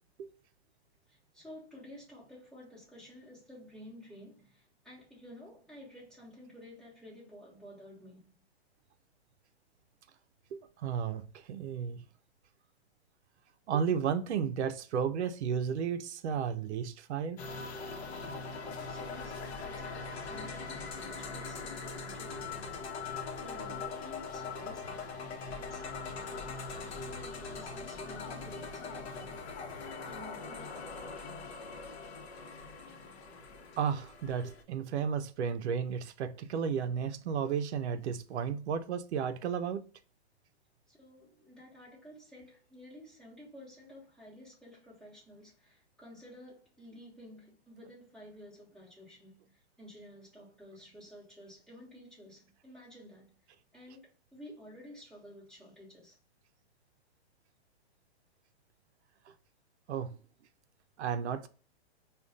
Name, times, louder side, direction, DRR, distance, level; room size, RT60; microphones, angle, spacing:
voice 1, 1.1-8.4 18.7-23.1 23.4-25.3 25.6-29.5 29.9-31.5 40.9-53.3 53.7-56.1, left 1 dB, ahead, 1.3 m, -52 dB
voice 2, 10.5-12.0 13.7-17.4 33.8-39.9 59.9-60.2 61.0-61.5, right 7 dB, 85° right, 0.5 m, -33 dB
sound 1, 17.4-34.6, left 4 dB, 70° left, 0.9 m, -41 dB
5.0 x 2.3 x 2.4 m
hypercardioid pair, 180°, 33 cm